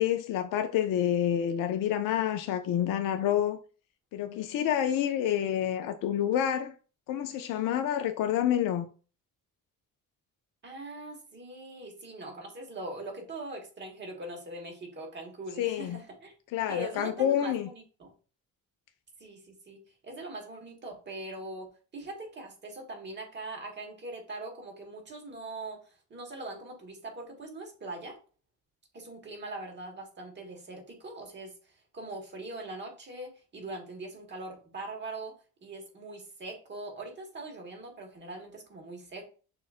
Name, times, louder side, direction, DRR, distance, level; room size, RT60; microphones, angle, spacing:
voice 1, 0.0-3.6 4.1-6.7 7.1-8.9 15.6-16.0 16.5-17.7, left 10 dB, 70° left, 0.5 m, -28 dB
voice 2, 10.6-16.3 16.7-18.1 19.2-21.7 21.9-28.2 28.9-35.3 35.6-39.3, right 2 dB, 30° right, 1.3 m, -41 dB
6.3 x 2.4 x 2.4 m
cardioid pair, 135°, 34 cm